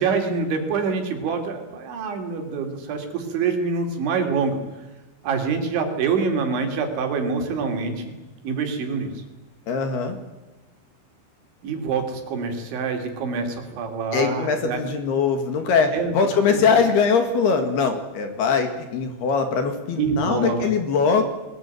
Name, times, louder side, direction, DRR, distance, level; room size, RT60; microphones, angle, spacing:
voice 1, 0.0-4.6 5.2-8.1 8.4-9.2 11.6-14.8 15.9-16.1 16.5-16.6 20.0-20.7, right 5 dB, 65° right, 4 dB, 5.1 m, -25 dB
voice 2, 9.7-10.2 14.1-21.2, left 5 dB, 60° left, 6 dB, 3.7 m, -21 dB
22.5 x 20.5 x 9.2 m, 1.1 s
omnidirectional pair, 5.8 m